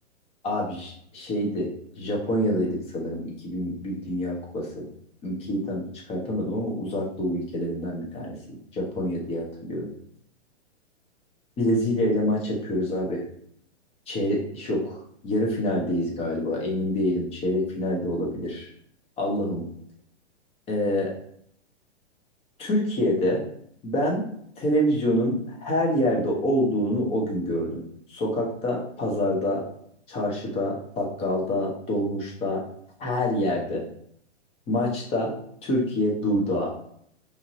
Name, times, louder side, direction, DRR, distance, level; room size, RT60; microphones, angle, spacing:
voice 1, 0.4-1.7 2.0-4.9 5.2-8.4 8.7-9.9 11.6-13.2 14.1-15.0 15.2-18.7 19.2-19.7 20.7-21.1 22.6-23.4 23.8-24.2 24.6-27.8 28.1-29.6 30.1-32.6 33.0-33.8 34.7-35.3 35.6-36.7, left 1 dB, 15° left, -1 dB, 0.6 m, -26 dB
3.0 x 2.5 x 2.6 m, 0.67 s
hypercardioid pair, 125°, 36 cm